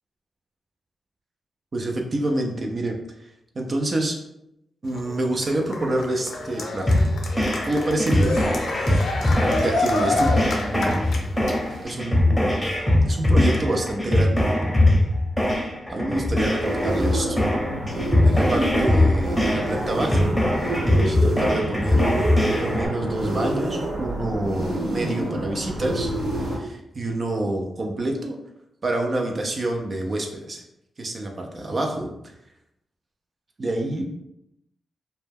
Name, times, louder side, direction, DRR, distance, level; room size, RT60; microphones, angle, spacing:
voice 1, 1.7-3.0 3.6-4.2 4.8-7.0 7.6-8.4 8.7-9.1 9.6-11.1 11.8-12.7 13.1-14.5 15.9-17.4 18.2-20.3 20.6-22.1 22.6-26.1 26.4-28.4 28.8-30.6 31.0-32.3 33.6-34.1, right 1 dB, 50° right, 2 dB, 0.4 m, -27 dB
Cheering, 4.8-11.8, left 2 dB, 75° left, 0.5 m, -28 dB
sound 1, 6.9-22.9, left 1 dB, 10° left, 0.7 m, -21 dB
sound 2, 16.5-26.6, right 1 dB, 85° right, 1.1 m, -28 dB
2.1 x 2.1 x 3.3 m, 0.82 s
cardioid pair, 55°, 0 cm